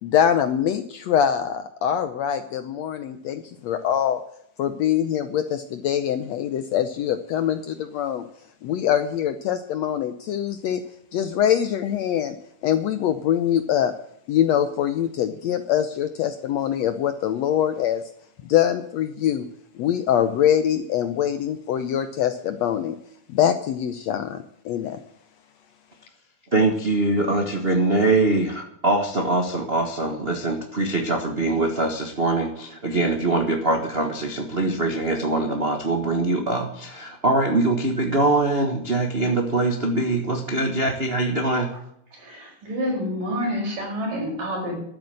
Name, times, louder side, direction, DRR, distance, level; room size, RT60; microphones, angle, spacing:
voice 1, 0.0-4.2 4.6-8.3 8.6-10.8 11.1-12.4 12.6-13.9 14.3-18.0 18.4-19.5 19.7-23.0 23.3-25.0, left 9 dB, 75° left, 10 dB, 1.7 m, -23 dB
voice 2, 26.5-41.7, right 2 dB, 65° right, 3 dB, 0.6 m, -23 dB
voice 3, 42.1-44.8, equal, 85° right, 0 dB, 7.0 m, -28 dB
12.5 x 9.1 x 7.8 m, 0.71 s
omnidirectional pair, 3.7 m